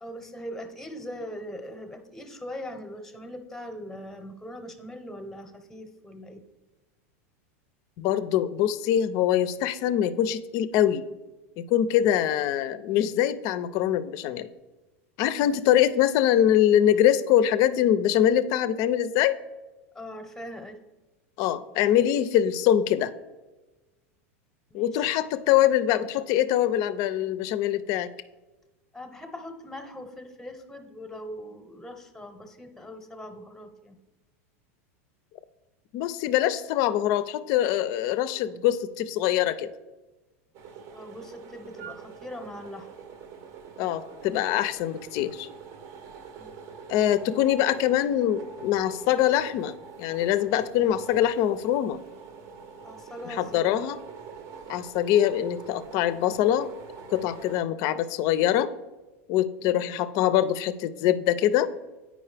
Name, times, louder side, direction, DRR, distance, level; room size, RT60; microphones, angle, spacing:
voice 1, 0.0-6.4 19.9-20.8 24.7-25.1 28.9-34.0 40.9-42.9 46.4-46.5 52.8-53.9, equal, 5° left, 6 dB, 0.8 m, -41 dB
voice 2, 8.0-11.1 11.6-14.5 15.2-19.4 21.4-23.1 24.7-28.1 35.9-39.7 43.8-45.5 46.9-52.0 53.3-54.0 54.7-56.7 57.1-58.7 59.3-61.7, left 11 dB, 50° left, 14 dB, 0.4 m, -23 dB
sound 1, 40.5-57.6, right 6 dB, 45° right, 0.7 m, -45 dB
8.6 x 5.0 x 3.3 m, 1.2 s
supercardioid pair, 120°, 8 cm